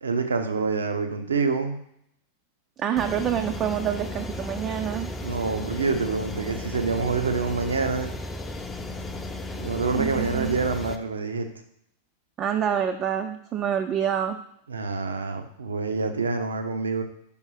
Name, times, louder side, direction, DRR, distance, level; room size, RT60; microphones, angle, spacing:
voice 1, 0.0-1.8 5.2-8.2 9.5-11.5 14.7-17.0, right 4 dB, 70° right, 7 dB, 0.8 m, -27 dB
voice 2, 2.8-5.1 9.9-10.6 12.4-14.4, right 9 dB, 30° right, 6 dB, 0.5 m, -27 dB
sound 1, 3.0-11.0, left 2 dB, 10° left, 0.6 m, -34 dB
5.3 x 5.3 x 4.8 m, 0.72 s
figure-of-eight pair, 90°, 0 cm